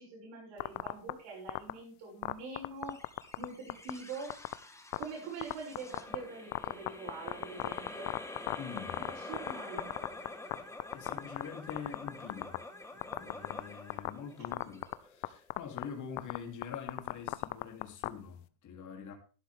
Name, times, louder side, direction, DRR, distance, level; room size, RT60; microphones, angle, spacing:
voice 1, 0.0-2.9 3.4-4.4 5.0-8.1 9.0-9.9, right 4 dB, 55° right, 6.8 m, -44 dB
sound 1, 0.6-1.1 1.5-1.7 2.2-3.4 3.7-3.9 4.3-4.5 4.9-5.0 5.4-6.2 6.5-9.5 9.8-10.5 10.8-11.4 11.7-12.6 13.0-13.6 13.9-14.1 14.4-14.9 15.2-15.3 15.5-15.8 16.2-18.1, left 25 dB, 85° left, 0.9 m, -33 dB
sound 2, 2.9-15.5, left 2 dB, 5° left, 1.3 m, -48 dB
voice 2, 8.6-9.1 10.5-10.6 10.9-12.6 12.9-19.2, left 7 dB, 35° left, 3.0 m, -45 dB
12.0 x 11.5 x 3.5 m
cardioid pair, 150°, 50 cm